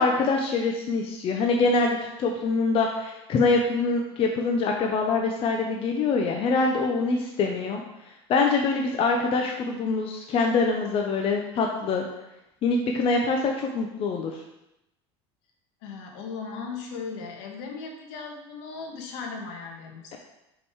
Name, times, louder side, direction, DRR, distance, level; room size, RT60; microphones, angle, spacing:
voice 1, 0.0-12.1 12.6-14.3, left 4 dB, 45° left, 1 dB, 0.9 m, -24 dB
voice 2, 15.8-20.2, left 5 dB, 75° left, 1 dB, 1.7 m, -37 dB
5.4 x 5.2 x 4.8 m, 0.90 s
supercardioid pair, 100°, 14 cm